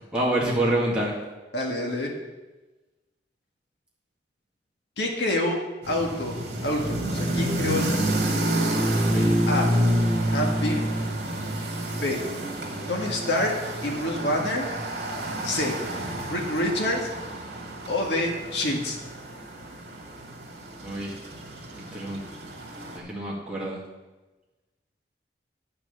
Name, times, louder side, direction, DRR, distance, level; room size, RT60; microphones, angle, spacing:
voice 1, 0.1-1.1 9.0-9.3 20.8-21.2 21.7-22.2 22.9-23.8, right 1 dB, 5° right, -6 dB, 2.2 m, -27 dB
voice 2, 1.5-2.1 5.0-5.6 5.9-6.4 6.6-8.0 9.5-9.7 10.3-10.9 11.9-12.2 12.9-13.5 13.8-14.7 15.4-15.7 16.3-17.1 17.9-19.0, left 1 dB, 85° left, 0 dB, 1.8 m, -27 dB
sound 1, 5.8-23.0, right 1 dB, 70° right, 2.2 m, -28 dB
9.6 x 6.0 x 7.0 m, 1.2 s
head